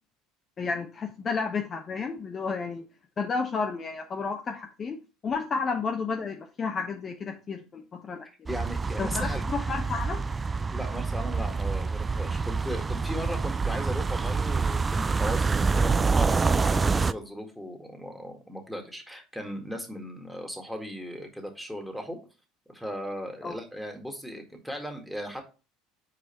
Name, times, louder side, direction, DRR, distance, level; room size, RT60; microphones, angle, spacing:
voice 1, 0.6-2.9 3.2-5.0 5.2-8.3 9.0-10.2 23.4-23.6, left 5 dB, 30° left, 3 dB, 0.8 m, -31 dB
voice 2, 8.5-9.4 10.7-22.2 22.7-25.4, equal, ahead, 3 dB, 1.8 m, -37 dB
sound 1, 8.5-17.1, right 4 dB, 20° right, 0.3 m, -27 dB
5.1 x 4.7 x 4.4 m, 0.32 s
figure-of-eight pair, 65°, 0 cm